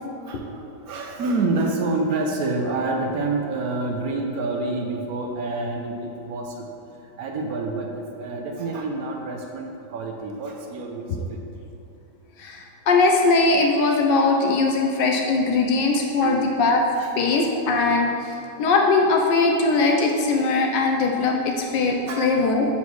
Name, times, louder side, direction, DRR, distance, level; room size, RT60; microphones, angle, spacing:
voice 1, 0.3-6.7 7.2-11.4 16.2-16.4 17.0-17.1 22.1-22.3, right 3 dB, 65° right, 2 dB, 1.0 m, -28 dB
voice 2, 12.4-16.8 17.2-18.3 18.6-22.7, left 3 dB, 80° left, 1 dB, 1.3 m, -20 dB
7.2 x 4.2 x 4.6 m, 2.9 s
omnidirectional pair, 1.9 m